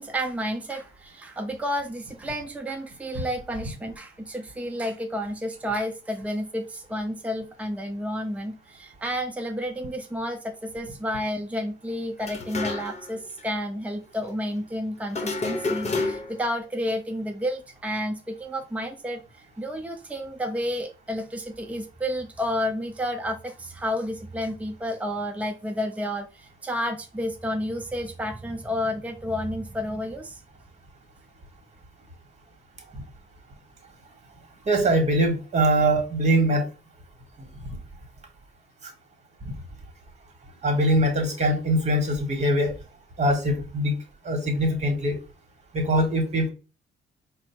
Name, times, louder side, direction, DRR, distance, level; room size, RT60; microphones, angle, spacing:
voice 1, 0.0-19.2 19.6-30.4, equal, 5° right, 4 dB, 0.6 m, -31 dB
sound 1, 12.2-13.1 13.4-13.5 15.1-16.5, left 3 dB, 35° left, 0.9 m, -29 dB
voice 2, 34.7-36.6 40.6-42.7 43.2-44.0 44.2-45.2 45.7-46.5, right 1 dB, 35° right, 3 dB, 1.5 m, -22 dB
4.3 x 2.1 x 4.5 m, 0.32 s
cardioid pair, 90°, 20 cm